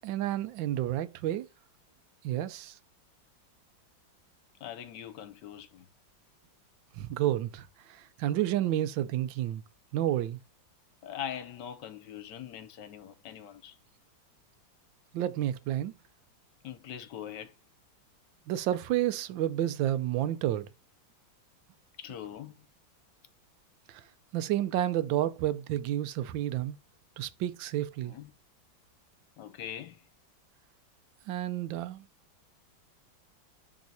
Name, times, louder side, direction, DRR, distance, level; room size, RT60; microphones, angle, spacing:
voice 1, 0.0-1.5 2.2-2.8 6.9-9.6 9.9-10.4 15.1-15.9 18.5-20.7 23.9-24.0 24.3-26.8 27.2-28.1 31.3-32.0, right 12 dB, 80° right, 1.3 m, -30 dB
voice 2, 4.6-5.9 11.0-13.8 16.6-17.5 22.0-22.6 28.1-28.3 29.4-30.0, left 10 dB, 70° left, 1.3 m, -42 dB
10.5 x 3.6 x 2.7 m
omnidirectional pair, 2.0 m